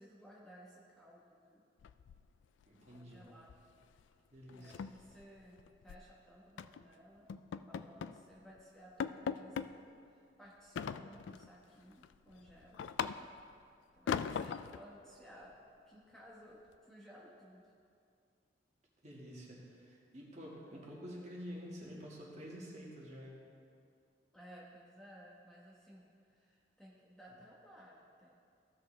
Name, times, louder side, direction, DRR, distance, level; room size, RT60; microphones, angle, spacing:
voice 1, 0.0-1.6 2.9-3.5 4.5-7.3 7.6-12.9 13.9-15.5 15.9-17.7 20.7-20.9 24.3-28.4, equal, 5° left, -6 dB, 1.1 m, -58 dB
sound 1, 1.8-2.6 2.9-3.2 3.5-3.7 4.0-4.1 4.5-6.1 6.6-6.8 7.3-8.2 8.6-8.7 9.0-9.7 10.8-11.5 11.9-13.5 14.1-14.8, left 7 dB, 80° left, 0.3 m, -40 dB
voice 2, 2.7-3.3 4.3-4.9 19.0-23.4, equal, 40° right, -4 dB, 1.9 m, -49 dB
15.5 x 6.2 x 3.4 m, 2.4 s
head